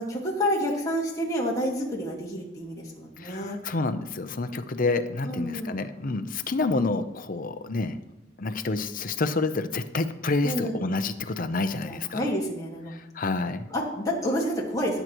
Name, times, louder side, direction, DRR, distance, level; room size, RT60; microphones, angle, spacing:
voice 1, 0.0-3.6 5.2-5.7 10.4-10.8 11.8-13.0 13.7-15.0, equal, 20° left, -3 dB, 1.8 m, -29 dB
voice 2, 3.2-8.0 8.4-12.2 12.9-13.6, left 3 dB, 45° left, 10 dB, 0.7 m, -28 dB
17.0 x 8.0 x 3.0 m, 0.94 s
head